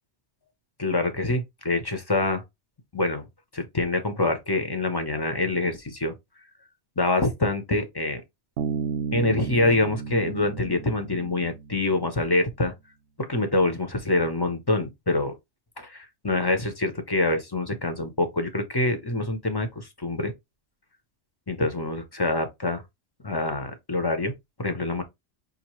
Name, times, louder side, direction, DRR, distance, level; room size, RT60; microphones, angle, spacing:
voice 1, 0.8-2.4 2.9-3.3 3.5-6.1 7.0-8.2 9.1-12.7 13.2-15.4 15.8-20.3 21.5-22.8 23.2-24.3 24.6-25.0, left 2 dB, 25° left, 0.7 m, -25 dB
Bass guitar, 8.6-12.1, right 6 dB, 65° right, 0.8 m, -33 dB
5.4 x 2.6 x 3.0 m
omnidirectional pair, 1.2 m